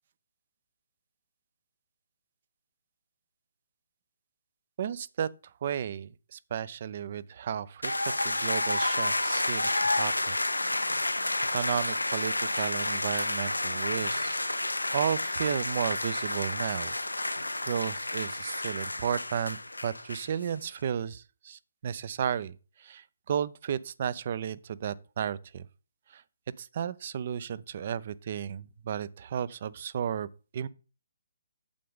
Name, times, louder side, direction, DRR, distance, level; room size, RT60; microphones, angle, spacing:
voice 1, 4.8-5.3 5.6-11.0 11.5-14.4 14.9-25.7 26.1-26.2 26.6-30.3 30.5-30.7, right 8 dB, 45° right, 0.5 m, -34 dB
sound 1, 7.8-20.5, left 2 dB, 85° left, 0.6 m, -30 dB
8.6 x 7.6 x 3.7 m
figure-of-eight pair, 135°, 0 cm